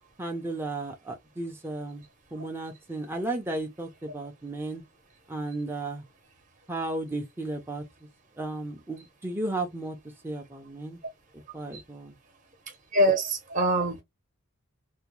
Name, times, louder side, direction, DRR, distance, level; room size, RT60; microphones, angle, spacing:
voice 1, 0.2-2.0 2.3-4.8 5.3-6.0 6.7-7.8 8.4-10.0 10.2-11.0 11.5-12.1, right 2 dB, 10° right, 0.5 m, -34 dB
voice 2, 12.9-14.0, right 1 dB, 35° right, 0.9 m, -24 dB
3.4 x 2.1 x 3.0 m
head